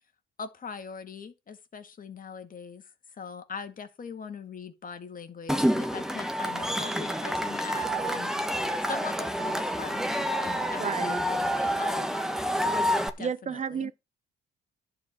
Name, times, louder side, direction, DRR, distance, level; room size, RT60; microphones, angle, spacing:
voice 1, 0.4-2.8 3.2-8.3 8.9-12.1 13.2-13.9, left 5 dB, 45° left, 2.1 m, -41 dB
Cheering / Crowd, 5.5-13.1, equal, ahead, 1.4 m, -28 dB
voice 2, 10.6-11.2 13.2-13.9, right 6 dB, 35° right, 0.7 m, -32 dB
11.0 x 4.8 x 7.9 m
cardioid pair, 90°, 20 cm